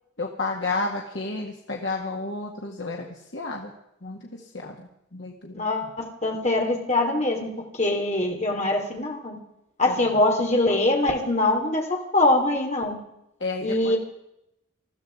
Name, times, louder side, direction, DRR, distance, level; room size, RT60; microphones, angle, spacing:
voice 1, 0.2-3.7 4.0-5.7 8.5-8.6 9.9-10.0 13.4-14.0, left 3 dB, 65° left, 0 dB, 2.0 m, -32 dB
voice 2, 5.5-9.4 9.8-13.0 13.6-14.0, left 2 dB, 35° left, 1 dB, 3.5 m, -23 dB
21.0 x 14.5 x 4.8 m, 0.82 s
head